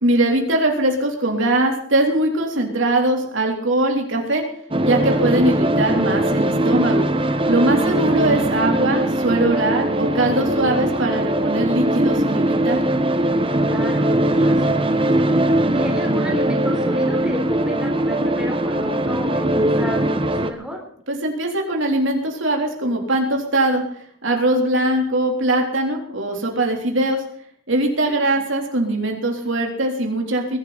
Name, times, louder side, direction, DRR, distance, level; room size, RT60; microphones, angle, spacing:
voice 1, 0.0-4.4 4.8-7.1 7.4-12.8 21.1-23.8 24.2-27.2 27.7-30.6, right 1 dB, 70° right, 1 dB, 3.8 m, -21 dB
sound 1, 4.7-20.5, right 1 dB, 25° right, 1.4 m, -20 dB
voice 2, 13.6-14.9 15.7-20.8 28.0-28.4, left 1 dB, 5° right, 1 dB, 4.1 m, -32 dB
21.5 x 12.5 x 4.3 m, 0.64 s
head